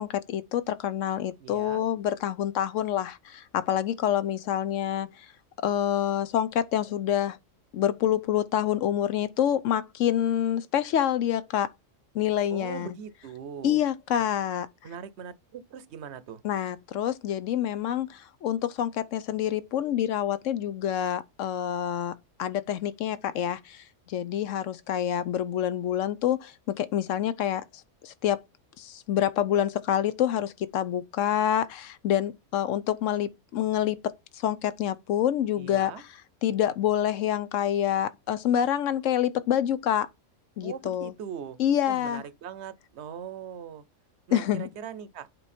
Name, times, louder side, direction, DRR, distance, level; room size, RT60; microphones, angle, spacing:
voice 1, 0.0-5.3 5.6-7.4 7.7-11.7 12.1-12.9 13.6-14.7 16.4-22.1 22.4-27.6 28.0-28.4 28.8-36.1 36.4-40.1 40.6-41.1 41.6-42.2 44.3-44.7, left 10 dB, 75° left, 0.9 m, -27 dB
voice 2, 1.4-1.8 12.5-13.8 14.8-16.4 35.6-36.0 40.6-41.6 41.9-43.8 44.3-45.3, right 8 dB, 60° right, 0.9 m, -40 dB
7.8 x 4.5 x 4.2 m
omnidirectional pair, 1.4 m